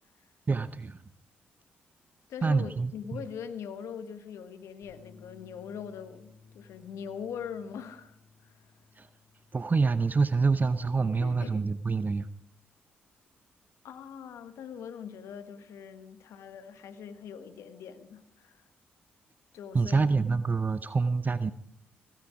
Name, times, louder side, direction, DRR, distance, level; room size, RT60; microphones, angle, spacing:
voice 1, 0.5-1.0 2.4-3.2 9.0-9.1 9.5-12.3 19.7-21.5, right 4 dB, 35° right, 14 dB, 0.7 m, -26 dB
voice 2, 2.3-8.1 8.4-8.5 11.1-11.7 13.8-18.6 19.5-20.1, left 7 dB, 70° left, 10 dB, 1.4 m, -42 dB
Bass guitar, 4.8-11.1, left 5 dB, 85° left, 4.6 m, -58 dB
16.5 x 15.5 x 4.9 m, 0.71 s
hypercardioid pair, 40°, 5 cm